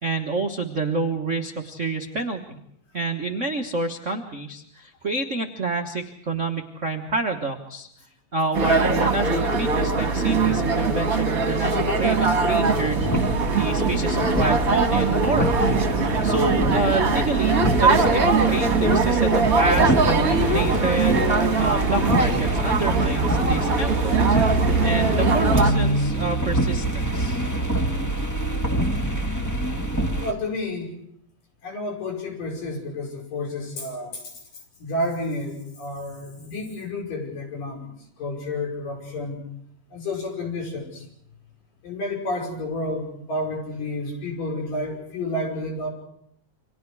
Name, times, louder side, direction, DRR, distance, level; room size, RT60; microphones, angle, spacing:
voice 1, 0.0-2.6 2.9-7.9 8.3-15.6 16.2-24.4 24.8-27.4, right 3 dB, 55° right, 2 dB, 0.8 m, -28 dB
sound 1, 8.5-25.7, right 3 dB, 30° right, 1.8 m, -21 dB
sound 2, 13.0-30.3, right 1 dB, 15° left, 0.5 m, -25 dB
voice 2, 30.2-30.9 31.6-34.2 34.8-37.9 38.2-39.5 39.9-41.1 41.8-45.9, left 1 dB, 80° left, 1 dB, 6.9 m, -30 dB
29.5 x 25.5 x 4.8 m, 0.73 s
omnidirectional pair, 3.7 m